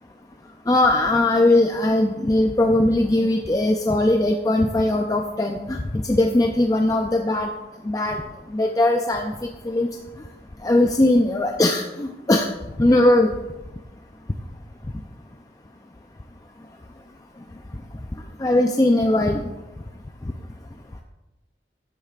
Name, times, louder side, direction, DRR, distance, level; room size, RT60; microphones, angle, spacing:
voice 1, 0.7-5.8 6.1-7.5 7.8-8.2 8.5-9.3 9.7-9.9 10.6-12.5 12.8-13.3 18.4-19.4, left 1 dB, 20° left, 3 dB, 0.4 m, -19 dB
12.0 x 8.4 x 2.4 m, 1.0 s
head